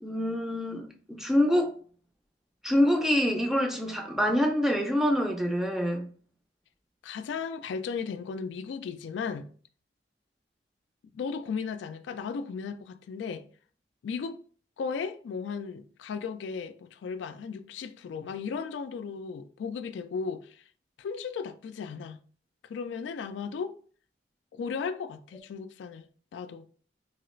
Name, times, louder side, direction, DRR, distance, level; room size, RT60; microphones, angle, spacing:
voice 1, 0.0-1.7 2.6-6.1, equal, ahead, 0.4 m, -26 dB
voice 2, 7.0-9.5 11.1-13.4 14.0-14.4 14.8-20.6 21.0-22.2 22.6-23.8 24.5-26.1 26.3-26.7, left 5 dB, 85° left, 0.3 m, -35 dB
3.0 x 2.4 x 3.0 m
head